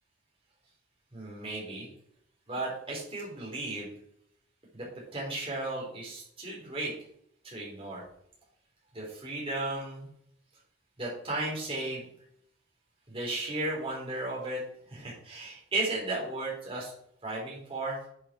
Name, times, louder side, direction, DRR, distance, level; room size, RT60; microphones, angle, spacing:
voice 1, 1.1-1.9 2.5-3.9 4.7-4.9 5.1-6.9 7.4-8.0 8.9-10.1 11.0-12.0 13.1-14.6 14.9-16.9 17.2-18.0, right 2 dB, 30° right, -4 dB, 3.5 m, -35 dB
10.0 x 5.4 x 4.3 m, 0.69 s
head